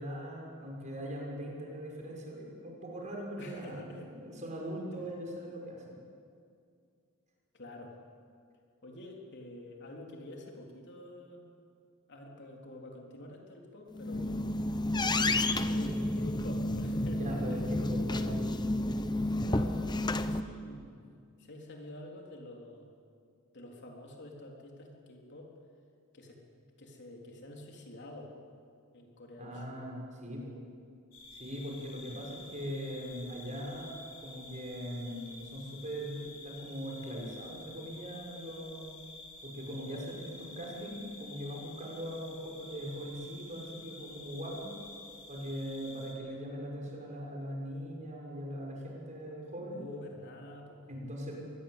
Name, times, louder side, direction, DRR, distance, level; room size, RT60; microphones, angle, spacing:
voice 1, 0.0-6.0 17.1-18.4 29.4-30.6 31.3-38.9 39.4-44.7 45.3-49.8 50.9-51.4, equal, 35° right, -2 dB, 6.2 m, -40 dB
voice 2, 3.4-4.1 4.9-5.1 7.5-8.0 8.8-11.4 12.1-14.5 15.0-17.7 19.4-21.0 21.4-22.9 23.5-25.5 26.1-26.4 26.8-28.3 28.9-29.8 49.7-50.8, left 1 dB, 55° left, 0 dB, 3.7 m, -48 dB
sound 1, 13.9-20.4, left 1 dB, 20° left, 0.8 m, -31 dB
sound 2, 31.1-46.1, left 2 dB, 80° left, 5.6 m, -50 dB
24.5 x 20.5 x 8.3 m, 2.3 s
head